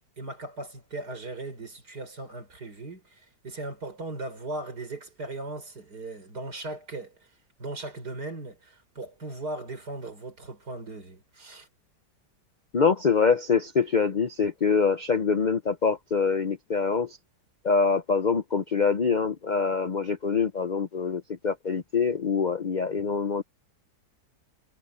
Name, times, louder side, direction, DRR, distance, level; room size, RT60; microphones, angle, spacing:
voice 1, 0.2-7.1 7.6-11.7, right 2 dB, 65° right, 5.5 m, -38 dB
voice 2, 12.7-17.2 17.6-23.4, left 5 dB, 50° left, 0.5 m, -25 dB
omnidirectional pair, 1.8 m